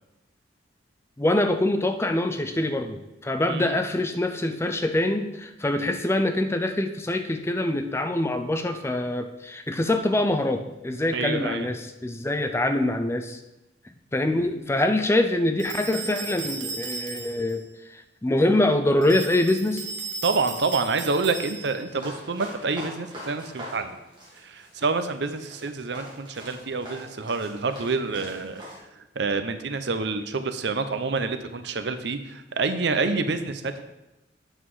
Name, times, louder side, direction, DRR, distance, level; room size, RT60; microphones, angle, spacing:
voice 1, 1.2-13.4 14.1-17.6 17.9-19.9, left 1 dB, 15° left, 7 dB, 0.5 m, -24 dB
voice 2, 11.1-11.7 20.2-24.0 24.4-28.6 29.2-33.8, right 4 dB, 65° right, 9 dB, 0.6 m, -27 dB
sound 1, 15.6-17.6 19.0-21.9, right 5 dB, 80° right, 1.4 m, -36 dB
sound 2, 21.9-28.8, equal, 25° right, 2.1 m, -43 dB
8.1 x 5.8 x 4.8 m, 0.97 s
head